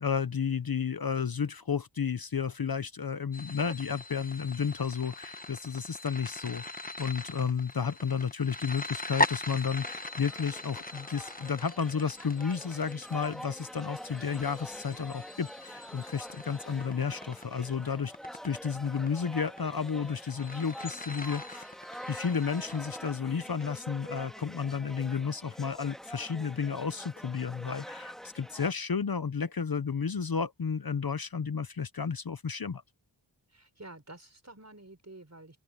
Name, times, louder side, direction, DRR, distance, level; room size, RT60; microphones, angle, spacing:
voice 1, 0.0-6.6 7.0-18.1 18.4-21.7 22.1-32.8, left 6 dB, 50° left, 0.8 m, -32 dB
sound 1, 3.3-23.1, left 2 dB, 20° left, 1.2 m, -40 dB
sound 2, 9.8-28.7, equal, ahead, 2.3 m, -46 dB
voice 2, 33.5-35.6, right 2 dB, 35° right, 5.1 m, -49 dB
open air
wide cardioid pair, 65°, 46 cm